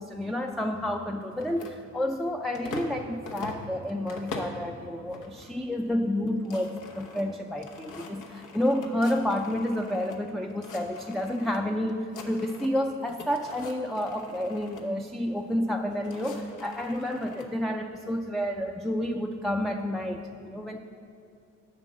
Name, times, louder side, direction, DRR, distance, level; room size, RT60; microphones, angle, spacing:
voice 1, 0.0-20.8, left 1 dB, ahead, 3 dB, 0.4 m, -30 dB
sound 1, 1.3-3.0 3.3-4.7 5.1-5.5 5.9-6.0 6.2-10.2 10.5-11.6 11.9-12.8 13.1-14.9 15.7-17.5, left 3 dB, 85° left, 1.0 m, -43 dB
7.6 x 5.3 x 7.4 m, 2.5 s
cardioid pair, 90°, 30 cm